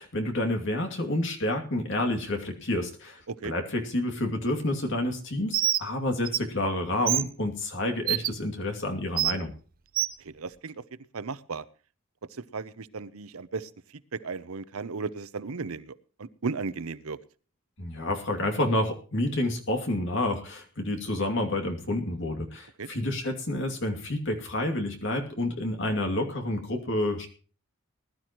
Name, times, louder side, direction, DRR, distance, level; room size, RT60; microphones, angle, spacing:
voice 1, 0.0-9.5 17.8-27.3, left 1 dB, 55° left, 3 dB, 2.6 m, -29 dB
Bird, 5.5-5.8 6.3-6.4 7.1-7.2 8.1-8.3 9.2-9.3 10.0-10.1, right 13 dB, 40° right, 0.5 m, -25 dB
voice 2, 10.2-10.8 11.1-11.6 12.3-17.2 22.8-22.9, right 4 dB, 75° right, 15 dB, 0.7 m, -36 dB
20.5 x 12.0 x 3.0 m, 0.38 s
head